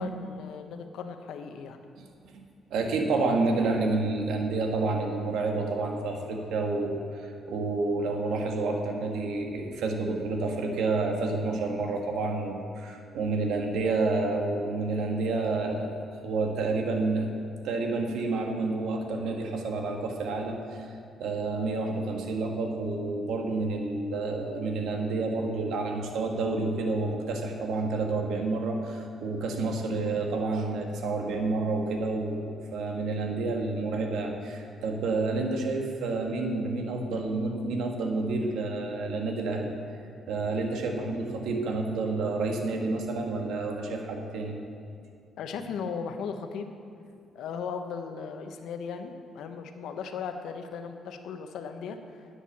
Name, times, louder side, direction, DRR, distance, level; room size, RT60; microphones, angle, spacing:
voice 1, 0.0-1.8 45.4-46.7 47.3-52.2, left 6 dB, 80° left, 7 dB, 1.0 m, -37 dB
voice 2, 2.7-15.9 16.2-17.3 17.6-20.9 21.2-39.7 40.3-44.5, right 3 dB, 80° right, 2 dB, 1.7 m, -29 dB
10.5 x 8.3 x 7.1 m, 2.4 s
cardioid pair, 90°, 0 cm